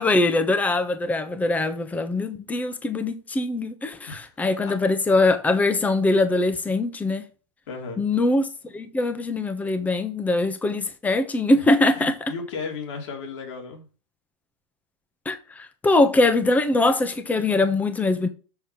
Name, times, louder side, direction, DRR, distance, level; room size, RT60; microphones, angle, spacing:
voice 1, 0.0-7.2 8.0-8.5 8.7-12.1 15.2-18.3, left 2 dB, 10° left, 1.1 m, -22 dB
voice 2, 4.1-4.7 7.7-8.0 9.0-9.1 9.7-9.9 11.5-11.7 11.9-13.9, left 4 dB, 70° left, 3.4 m, -36 dB
6.8 x 6.6 x 5.9 m
supercardioid pair, 135°, 16 cm